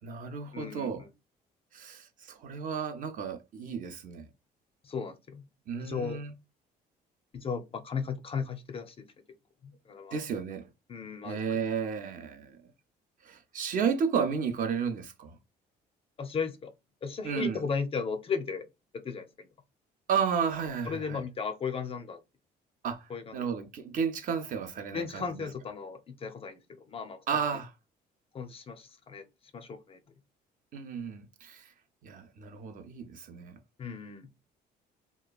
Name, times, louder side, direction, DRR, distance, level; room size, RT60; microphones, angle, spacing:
voice 1, 0.0-1.1 1.7-4.3 5.7-6.3 10.1-10.7 11.2-12.6 13.2-15.4 17.2-17.6 20.1-21.2 22.8-25.5 27.3-27.7 30.7-31.7 32.0-33.6, right 6 dB, 50° right, 0.6 m, -33 dB
voice 2, 0.5-1.1 4.8-5.4 5.8-6.2 7.3-9.1 9.6-10.2 10.9-11.6 16.2-16.7 17.0-18.7 18.9-19.5 20.9-22.2 23.1-23.5 24.9-27.2 28.3-29.3 29.5-30.0 33.8-34.3, left 5 dB, 35° left, 0.5 m, -36 dB
2.9 x 2.2 x 2.3 m
cardioid pair, 110°, 17 cm